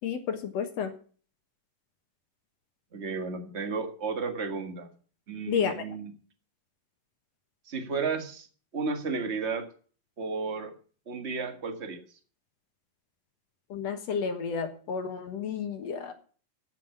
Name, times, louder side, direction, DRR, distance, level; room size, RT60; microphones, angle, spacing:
voice 1, 0.0-0.9 5.5-5.8 13.7-16.1, left 6 dB, 60° left, 7 dB, 2.1 m, -31 dB
voice 2, 2.9-4.9 5.3-6.1 7.7-8.5 8.7-9.7 10.2-10.7 11.1-12.0, right 4 dB, 35° right, 6 dB, 1.0 m, -33 dB
15.0 x 6.2 x 7.0 m, 0.42 s
omnidirectional pair, 3.9 m